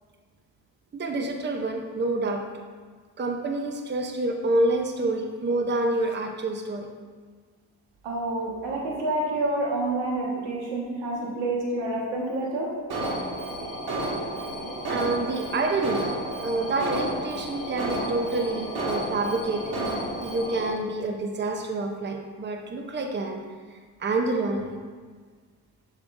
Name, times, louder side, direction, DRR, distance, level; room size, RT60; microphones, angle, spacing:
voice 1, 0.9-2.4 3.2-6.9 14.9-16.1 16.4-19.8 20.2-23.4 24.0-24.7, right 2 dB, 25° right, 3 dB, 0.7 m, -27 dB
voice 2, 8.0-12.7, right 2 dB, 80° right, -3 dB, 1.6 m, -28 dB
Alarm, 12.9-20.7, right 1 dB, 60° right, 1.9 m, -31 dB
6.9 x 6.2 x 2.6 m, 1.5 s
supercardioid pair, 65°, 43 cm